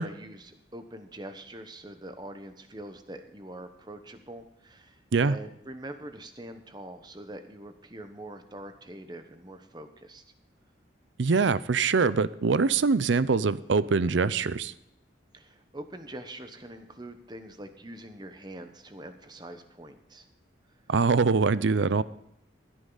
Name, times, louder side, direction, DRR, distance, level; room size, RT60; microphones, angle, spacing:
voice 1, 0.0-10.2 15.3-20.3, right 1 dB, 20° right, 8 dB, 1.0 m, -44 dB
voice 2, 11.2-14.7 20.9-22.0, right 4 dB, 75° right, 17 dB, 0.5 m, -23 dB
15.5 x 10.0 x 4.0 m, 0.80 s
head